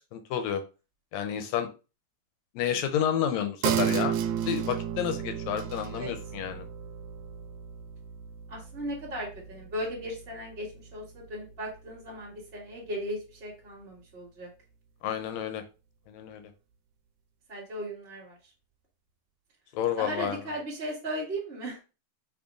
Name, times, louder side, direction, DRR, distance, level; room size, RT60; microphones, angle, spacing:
voice 1, 0.1-0.6 1.1-1.7 2.6-4.2 4.5-6.7 15.0-15.6 16.1-16.5 19.7-20.4, left 9 dB, 75° left, 8 dB, 1.8 m, -30 dB
sound 1, 3.6-10.7 11.0-11.1, right 9 dB, 90° right, 2.1 m, -33 dB
voice 2, 8.5-14.5 17.5-18.4 20.0-21.8, equal, 25° right, -7 dB, 1.8 m, -37 dB
6.2 x 3.3 x 2.5 m, 0.31 s
omnidirectional pair, 3.5 m